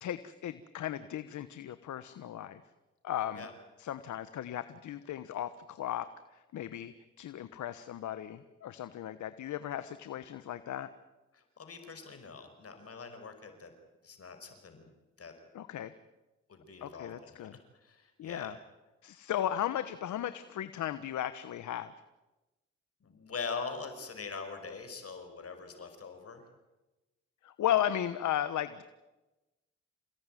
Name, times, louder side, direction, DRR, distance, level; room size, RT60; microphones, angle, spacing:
voice 1, 0.0-2.6 3.0-3.4 3.8-10.9 15.5-15.9 16.8-17.5 18.2-18.5 19.0-21.9 27.4-28.8, left 11 dB, 75° left, 12 dB, 1.2 m, -36 dB
voice 2, 11.3-13.7 14.0-14.9 15.2-15.3 16.5-18.5 23.0-26.4, left 5 dB, 50° left, 6 dB, 5.5 m, -43 dB
28.5 x 18.0 x 9.3 m, 1.1 s
supercardioid pair, 60°, 30 cm